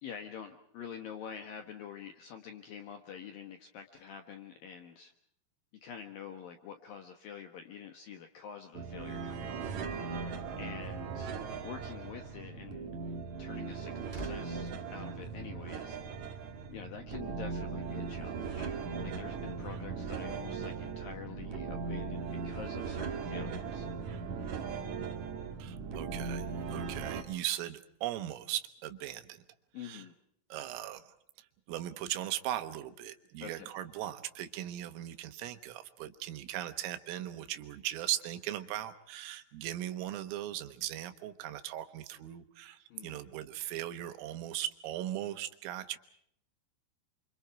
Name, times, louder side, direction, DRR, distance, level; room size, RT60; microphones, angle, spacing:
voice 1, 0.0-5.1 5.8-9.9 10.6-11.3 11.6-12.9 13.4-18.8 19.0-23.9 29.7-30.1 33.4-33.7 42.9-43.2, left 7 dB, 70° left, 6 dB, 2.2 m, -47 dB
sound 1, 8.7-27.2, right 5 dB, 65° right, 1.8 m, -38 dB
sound 2, 13.6-16.0 16.3-16.6, left 2 dB, 5° right, 3.7 m, -50 dB
voice 2, 25.6-29.4 29.8-30.0 30.5-31.0 31.7-46.0, right 13 dB, 85° right, 9 dB, 3.9 m, -38 dB
28.5 x 26.5 x 4.7 m, 0.72 s
omnidirectional pair, 5.8 m